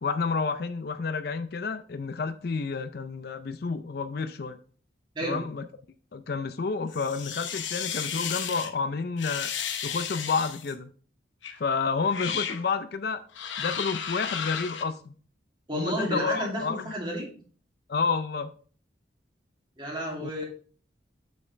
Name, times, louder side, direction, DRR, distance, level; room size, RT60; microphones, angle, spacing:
voice 1, 0.0-4.6 5.2-5.7 6.1-9.5 9.8-10.9 11.6-13.2 13.6-15.1 15.7-16.9 17.9-18.5 20.2-20.3, left 4 dB, 50° left, 0.4 m, -30 dB
sound 1, 6.9-8.7 9.2-10.7 11.4-11.6 12.0-12.6 13.3-14.8, left 8 dB, 75° left, 0.9 m, -33 dB
voice 2, 15.7-17.3 19.8-20.5, equal, 25° right, 2.5 m, -31 dB
8.4 x 5.6 x 3.2 m
head